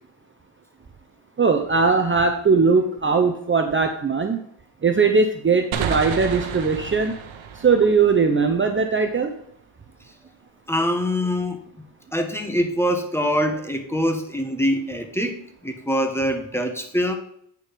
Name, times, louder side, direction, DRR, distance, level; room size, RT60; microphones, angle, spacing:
voice 1, 1.4-4.4 4.8-7.1 7.5-9.3, right 4 dB, 25° right, 5 dB, 0.8 m, -19 dB
sound 1, 5.7-9.2, right 7 dB, 85° right, 1.0 m, -31 dB
voice 2, 10.7-11.6 12.1-17.1, equal, 5° left, 5 dB, 1.2 m, -24 dB
8.9 x 4.6 x 5.2 m, 0.68 s
cardioid pair, 80°, 46 cm